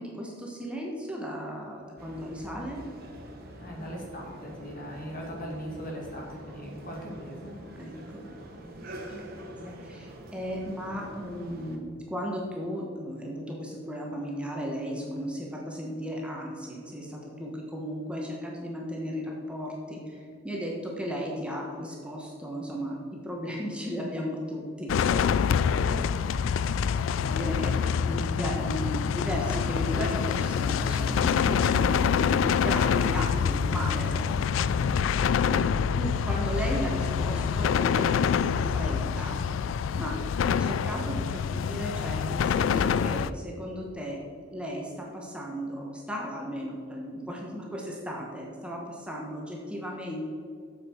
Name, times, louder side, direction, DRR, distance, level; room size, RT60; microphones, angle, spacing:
voice 1, 0.0-2.9 7.8-25.6 25.8-39.4 40.0-44.2 44.5-50.2, equal, 5° right, -2 dB, 1.1 m, -36 dB
sound 1, 2.0-11.8, right 1 dB, 55° right, 1.2 m, -45 dB
voice 2, 3.6-7.6 25.4-25.6 34.6-35.0, equal, 50° left, -2 dB, 2.1 m, -39 dB
sound 2, 24.9-43.3, left 7 dB, 85° left, 0.3 m, -26 dB
8.2 x 7.2 x 4.5 m, 2.3 s
head